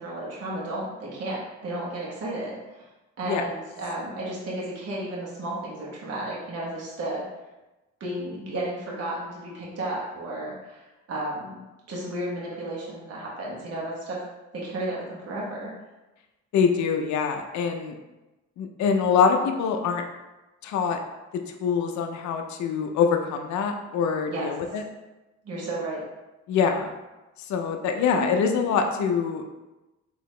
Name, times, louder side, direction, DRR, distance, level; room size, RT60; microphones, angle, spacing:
voice 1, 0.0-2.8 3.2-7.2 8.0-11.6 11.9-14.2 14.5-15.7 24.3-24.5 25.4-26.0, right 1 dB, 55° right, -5 dB, 1.2 m, -33 dB
voice 2, 16.5-17.9 18.6-20.0 20.6-21.0 21.6-24.8 26.5-26.9 27.5-29.4, left 6 dB, 70° left, 4 dB, 0.5 m, -24 dB
3.9 x 2.9 x 3.1 m, 1.1 s
cardioid pair, 90°, 30 cm